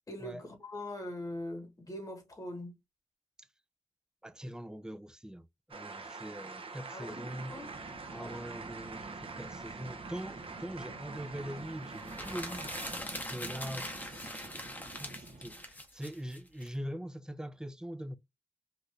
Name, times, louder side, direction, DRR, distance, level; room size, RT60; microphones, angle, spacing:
voice 1, 0.1-2.7 6.9-7.7 8.1-8.4 10.9-11.0 13.4-13.7, left 1 dB, 30° left, 1.2 m, -42 dB
voice 2, 4.2-7.6 8.1-12.7 13.3-18.2, equal, 5° right, 0.4 m, -43 dB
sound 1, 5.7-13.0, right 4 dB, 50° right, 0.7 m, -45 dB
sound 2, 7.0-15.8, right 3 dB, 80° right, 0.9 m, -49 dB
sound 3, 12.0-16.7, left 1 dB, 15° left, 0.8 m, -42 dB
2.8 x 2.5 x 3.3 m
wide cardioid pair, 105°, 12 cm